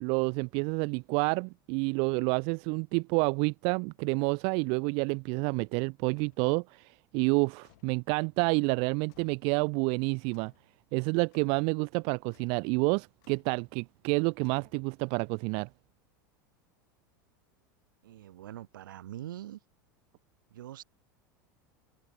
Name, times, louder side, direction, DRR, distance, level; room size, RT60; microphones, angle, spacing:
voice 1, 0.0-10.5 10.9-15.7, right 34 dB, 55° right, 0.6 m, -29 dB
sound 1, 6.2-6.5 7.6-8.0 9.1-9.5 10.3-10.7 11.3-11.7 12.3-12.7 13.2-13.6 14.4-15.1, left 28 dB, 60° left, 5.2 m, -63 dB
voice 2, 18.0-19.6 20.5-20.8, right 13 dB, 75° right, 1.4 m, -43 dB
hypercardioid pair, 90°, 11 cm